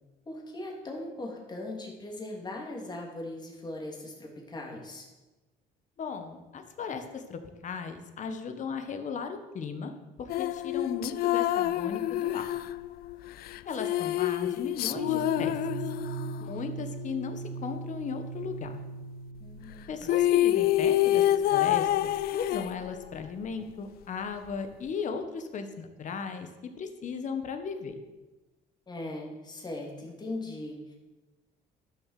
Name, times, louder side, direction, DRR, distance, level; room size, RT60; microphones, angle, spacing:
voice 1, 0.3-5.1 19.4-20.2 28.9-30.9, left 2 dB, 25° left, 0 dB, 2.9 m, -39 dB
voice 2, 6.0-9.9 10.2-12.5 13.6-15.5 16.4-18.8 19.9-21.2 21.5-26.5 26.8-28.0, left 5 dB, 45° left, 7 dB, 1.5 m, -36 dB
sound 1, 10.3-16.5 19.7-19.8 20.0-23.2, left 13 dB, 65° left, 0.4 m, -27 dB
sound 2, 14.9-20.2, right 2 dB, 60° right, 1.6 m, -38 dB
11.5 x 7.0 x 6.7 m, 1.1 s
cardioid pair, 110°, 17 cm